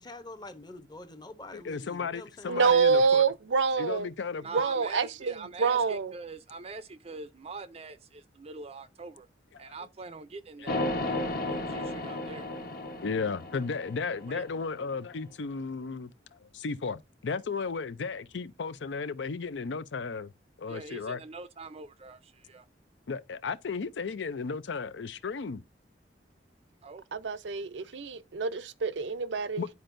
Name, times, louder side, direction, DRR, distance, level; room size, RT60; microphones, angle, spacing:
voice 1, 0.0-2.7, left 2 dB, 25° left, 0.8 m, -46 dB
voice 2, 1.5-3.3 3.8-4.5 9.5-9.7 10.6-10.9 13.0-20.3 20.6-21.2 23.1-25.6 29.6-29.7, left 4 dB, 80° left, 0.5 m, -34 dB
voice 3, 2.5-4.1 4.5-6.1 27.1-29.6, right 5 dB, 80° right, 0.6 m, -26 dB
voice 4, 4.4-9.3 9.6-12.5 14.3-14.4 20.7-22.7 26.8-27.0, right 3 dB, 35° right, 0.5 m, -44 dB
sound 1, 10.7-14.8, left 2 dB, 55° left, 1.1 m, -34 dB
10.5 x 4.4 x 2.6 m
head